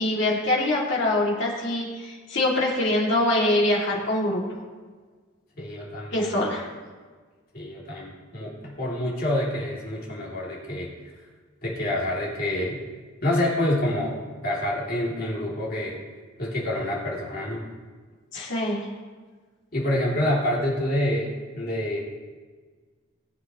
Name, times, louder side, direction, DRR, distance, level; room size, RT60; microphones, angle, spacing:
voice 1, 0.0-4.4 6.1-6.7 18.3-18.9, left 1 dB, 60° left, -3 dB, 2.6 m, -24 dB
voice 2, 5.6-6.5 7.5-11.1 11.6-12.8 13.2-16.0 16.4-17.6 19.7-22.0, left 1 dB, 45° left, -5 dB, 2.8 m, -27 dB
19.0 x 7.7 x 3.1 m, 1.4 s
head